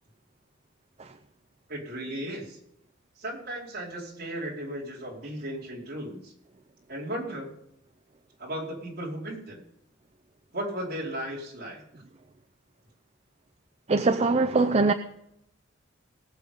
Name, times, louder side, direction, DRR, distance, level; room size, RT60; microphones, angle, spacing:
voice 1, 1.7-2.6 3.2-6.3 6.9-7.5 8.4-9.6 10.5-11.8, right 1 dB, 55° right, 4.7 m, -35 dB
voice 2, 13.9-14.9, right 3 dB, 35° right, 0.6 m, -22 dB
19.5 x 7.9 x 5.2 m
head